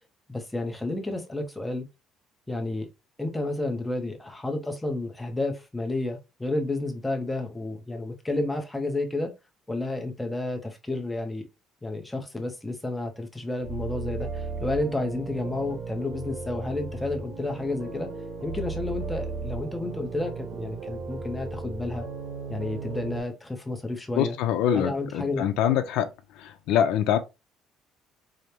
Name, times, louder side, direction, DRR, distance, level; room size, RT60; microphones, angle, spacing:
voice 1, 0.3-1.9 2.5-2.9 3.2-9.3 9.7-11.4 11.8-18.1 18.4-22.1 22.5-24.4 24.7-25.5, left 2 dB, 5° left, 0.6 m, -31 dB
sound 1, 13.6-23.2, right 4 dB, 50° right, 0.9 m, -36 dB
voice 2, 24.2-26.1 26.4-27.2, left 9 dB, 75° left, 0.6 m, -24 dB
5.0 x 2.1 x 2.8 m
cardioid pair, 175°, 0 cm